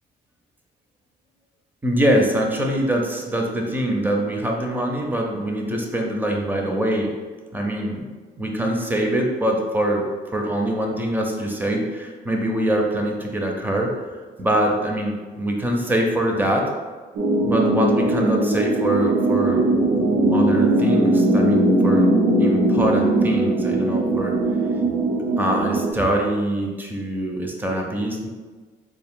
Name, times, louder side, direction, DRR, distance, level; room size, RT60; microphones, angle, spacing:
voice 1, 1.8-7.1 7.5-8.0 8.4-10.0 10.3-13.9 14.4-16.7 17.4-19.6 20.3-22.1 22.4-24.4 25.4-28.3, right 1 dB, 10° right, 1 dB, 0.5 m, -23 dB
sound 1, 17.2-25.9, right 1 dB, 85° right, 0.6 m, -19 dB
3.4 x 2.5 x 3.6 m, 1.4 s
cardioid pair, 150°, 18 cm